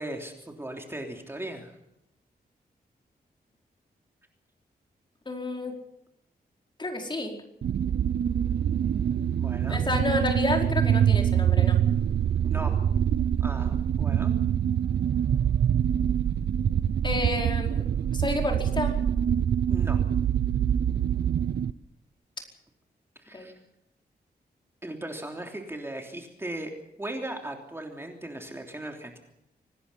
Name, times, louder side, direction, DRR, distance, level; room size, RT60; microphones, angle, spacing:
voice 1, 0.0-1.7 9.3-9.8 12.4-12.8 13.4-14.3 19.7-20.0 23.2-23.5 24.8-26.7 27.0-29.2, right 1 dB, 15° right, 2 dB, 3.2 m, -37 dB
voice 2, 5.2-5.8 6.8-7.4 9.7-11.8 17.0-17.9 18.1-19.0 23.3-23.5, left 2 dB, 30° left, 2 dB, 4.8 m, -30 dB
sound 1, 7.6-21.7, right 9 dB, 80° right, 0.7 m, -25 dB
25.5 x 19.5 x 5.6 m, 0.84 s
wide cardioid pair, 125°, 17 cm